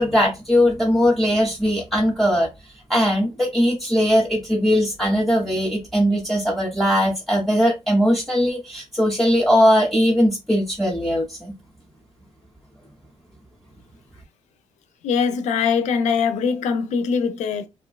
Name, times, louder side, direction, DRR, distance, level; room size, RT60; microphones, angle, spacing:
voice 1, 0.0-2.5 2.9-11.5, equal, ahead, 0.4 m, -19 dB
voice 2, 15.0-17.7, left 6 dB, 70° left, 0.5 m, -22 dB
2.5 x 2.2 x 2.2 m
cardioid pair, 115°, 12 cm